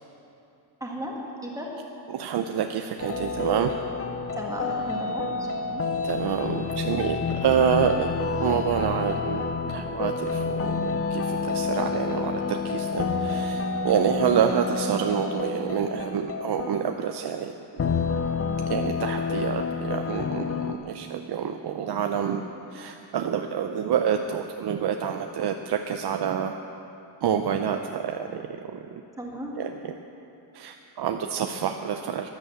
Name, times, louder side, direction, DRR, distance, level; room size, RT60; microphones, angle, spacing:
voice 1, 0.8-1.2 1.4-1.7 4.3-5.8 29.2-29.6, right 1 dB, 5° right, -2 dB, 1.9 m, -35 dB
voice 2, 2.1-3.7 6.0-8.1 8.4-17.6 18.7-22.4 22.7-26.6 27.2-29.0 29.6-29.7 30.5-32.3, right 8 dB, 55° right, 5 dB, 0.6 m, -27 dB
sound 1, 3.0-17.1 17.8-20.8, left 4 dB, 30° left, 0.6 m, -29 dB
12.5 x 11.5 x 8.0 m, 2.8 s
wide cardioid pair, 175°, 47 cm